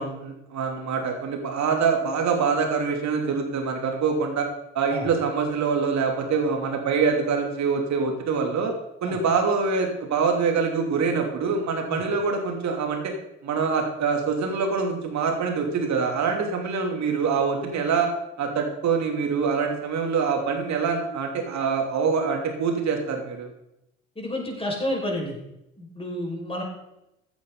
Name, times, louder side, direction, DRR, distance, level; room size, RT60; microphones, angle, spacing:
voice 1, 0.0-4.5 4.7-8.7 9.0-13.1 13.4-18.1 18.4-23.5, right 5 dB, 50° right, 3 dB, 3.2 m, -25 dB
voice 2, 24.2-25.4 25.8-26.6, left 1 dB, 15° left, -1 dB, 5.7 m, -30 dB
15.0 x 9.4 x 4.1 m, 0.85 s
figure-of-eight pair, 55°, 36 cm